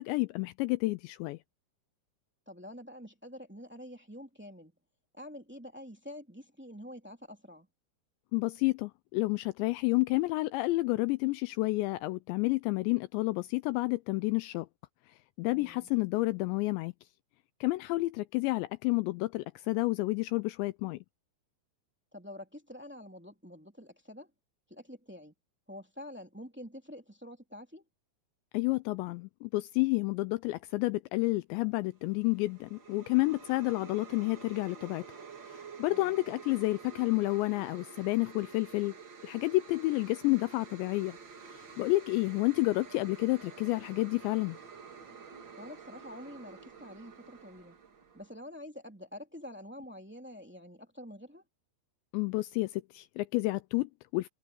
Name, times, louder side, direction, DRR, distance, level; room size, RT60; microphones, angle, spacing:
voice 1, 0.0-1.4 8.3-14.7 15.4-16.9 17.6-21.0 28.5-35.2 35.5-38.9 39.2-41.2 41.5-44.6 52.1-54.3, left 21 dB, 80° left, 2.7 m, -30 dB
voice 2, 2.4-4.7 5.1-7.7 15.5-15.9 22.1-24.3 24.7-25.3 25.7-27.8 35.9-36.2 45.6-47.8 48.1-51.4, left 1 dB, 5° right, 1.2 m, -47 dB
sound 1, 32.0-48.4, right 5 dB, 45° right, 1.5 m, -50 dB
omnidirectional pair, 5.4 m